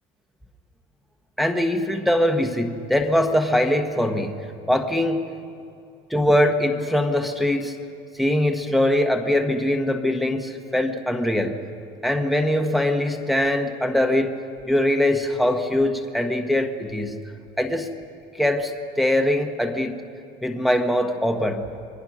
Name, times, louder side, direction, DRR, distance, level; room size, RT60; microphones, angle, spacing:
voice 1, 1.4-4.4 4.7-5.3 6.1-7.8 8.1-11.6 12.0-14.4 14.7-17.2 17.6-17.9 18.3-20.0 20.4-21.6, left 1 dB, ahead, 4 dB, 1.0 m, -22 dB
26.5 x 21.5 x 6.1 m, 2.6 s
cardioid pair, 175°, 18 cm